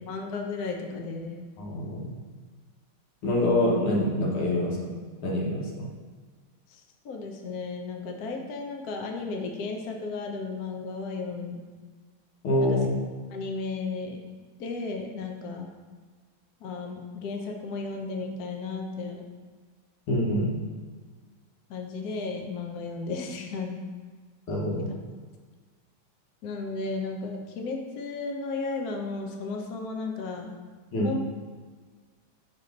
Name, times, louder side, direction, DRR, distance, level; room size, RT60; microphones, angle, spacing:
voice 1, 0.1-1.5 7.0-11.6 12.6-12.8 13.3-14.2 14.6-15.7 16.6-19.2 21.7-23.8 26.4-30.6 31.0-31.2, left 3 dB, 65° left, 2 dB, 1.0 m, -34 dB
voice 2, 1.6-2.1 3.2-5.9 12.4-12.9 20.1-20.6 24.5-24.9 30.9-31.1, left 1 dB, 80° left, -2 dB, 2.1 m, -26 dB
6.3 x 4.1 x 5.2 m, 1.5 s
omnidirectional pair, 2.4 m